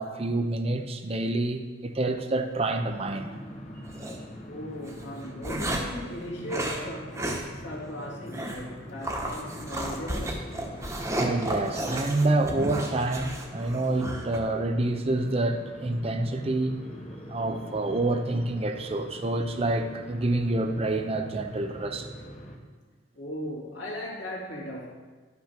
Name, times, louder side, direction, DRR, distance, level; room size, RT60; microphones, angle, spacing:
voice 1, 0.0-3.3 11.2-16.8 17.3-22.1, right 2 dB, 30° right, 6 dB, 0.6 m, -27 dB
sound 1, 2.8-22.6, equal, 35° left, 1.1 m, -43 dB
sound 2, 3.8-4.2 4.9-6.0 6.5-6.8 7.1-7.4 7.7-7.8 8.3-8.6 9.0-14.4, right 1 dB, 15° right, 1.1 m, -32 dB
voice 2, 4.5-10.3 23.1-24.9, equal, 65° left, -4 dB, 2.6 m, -38 dB
12.0 x 5.9 x 5.9 m, 1.4 s
head